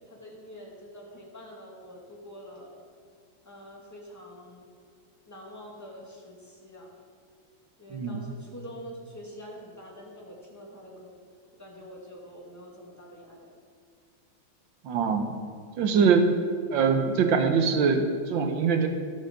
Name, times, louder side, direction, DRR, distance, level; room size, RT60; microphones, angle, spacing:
voice 1, 0.1-2.8 3.4-4.6 5.3-6.9 7.8-11.1 11.6-13.6, equal, 10° left, -3 dB, 1.8 m, -45 dB
voice 2, 7.9-8.2 14.8-15.4 15.8-16.3 16.7-18.9, right 5 dB, 65° right, 5 dB, 1.5 m, -23 dB
12.5 x 5.6 x 6.5 m, 2.1 s
omnidirectional pair, 2.4 m